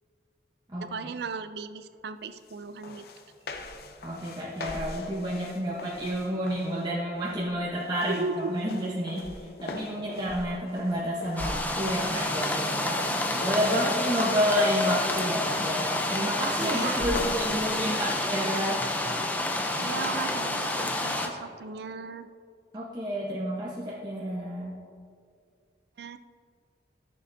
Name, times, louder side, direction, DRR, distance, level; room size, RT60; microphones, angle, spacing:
voice 1, 0.8-3.1 8.1-8.6 13.1-13.5 16.6-18.1 19.8-22.3 26.0-26.2, right 4 dB, 60° right, 12 dB, 0.4 m, -37 dB
sound 1, 2.5-2.6 2.8-6.9 7.3-7.7 8.0-15.5 16.6-17.6, left 2 dB, 55° left, 0.6 m, -41 dB
voice 2, 4.0-8.2 8.5-18.9 22.7-24.8, equal, 25° right, -6 dB, 0.9 m, -30 dB
sound 2, 11.4-21.3, left 1 dB, 10° left, 0.5 m, -29 dB
14.0 x 6.7 x 2.7 m, 2.2 s
head